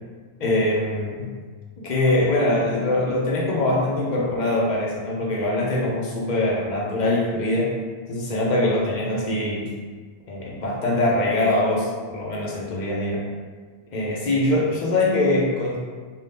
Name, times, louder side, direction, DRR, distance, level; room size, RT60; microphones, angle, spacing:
voice 1, 0.4-1.2 1.8-7.7 8.1-9.7 10.3-13.2 13.9-15.8, left 1 dB, 50° left, -4 dB, 0.6 m, -23 dB
2.6 x 2.3 x 3.3 m, 1.5 s
omnidirectional pair, 1.2 m